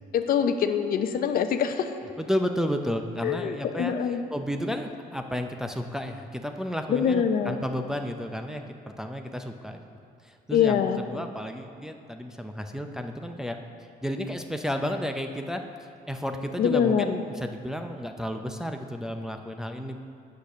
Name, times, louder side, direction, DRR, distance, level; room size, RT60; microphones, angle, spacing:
voice 1, 0.1-1.9 3.2-4.2 6.9-7.6 10.5-11.0 16.6-17.1, left 8 dB, 60° left, 7 dB, 0.6 m, -24 dB
voice 2, 2.2-9.8 10.2-13.6 14.0-20.0, equal, 5° right, 4 dB, 0.5 m, -32 dB
8.0 x 6.7 x 6.2 m, 2.5 s
cardioid pair, 110°, 17 cm